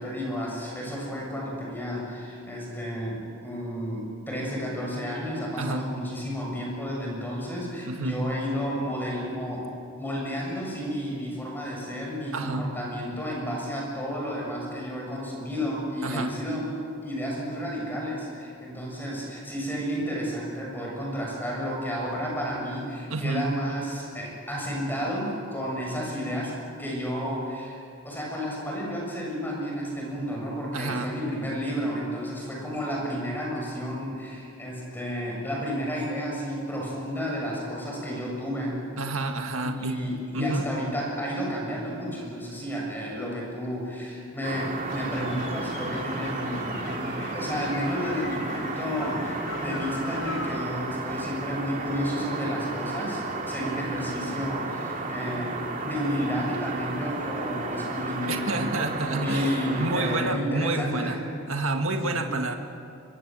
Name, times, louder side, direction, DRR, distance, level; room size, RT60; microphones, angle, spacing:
voice 1, 0.0-9.7 10.0-16.7 17.0-26.5 26.8-38.8 39.6-55.5 55.8-58.7 59.0-61.2 62.0-62.3, equal, 10° left, -2 dB, 7.0 m, -32 dB
voice 2, 5.6-5.9 7.8-8.2 12.3-12.7 16.0-16.4 23.1-23.5 30.7-31.1 39.0-40.0 40.3-40.6 58.3-61.2 61.5-62.6, right 2 dB, 85° right, 4 dB, 1.8 m, -29 dB
sound 1, 44.4-60.2, right 3 dB, 40° right, 2.8 m, -33 dB
sound 2, 44.9-50.6, left 3 dB, 70° left, 4.0 m, -40 dB
26.5 x 23.5 x 7.7 m, 2.6 s
head